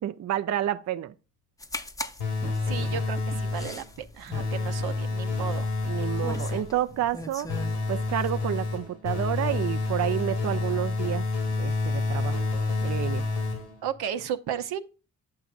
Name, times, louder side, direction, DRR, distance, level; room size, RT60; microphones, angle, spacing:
voice 1, 0.0-1.1 5.8-7.5 7.9-11.3 11.6-12.4 12.8-13.2, right 11 dB, 45° right, 0.5 m, -29 dB
sound 1, 1.6-8.3, left 1 dB, 10° left, 0.6 m, -40 dB
sound 2, 2.2-3.9 4.3-6.8 7.5-13.9, left 3 dB, 90° left, 1.5 m, -29 dB
voice 2, 2.2-6.0 13.8-14.8, right 9 dB, 70° right, 0.7 m, -34 dB
8.7 x 6.0 x 2.4 m
supercardioid pair, 45°, 40 cm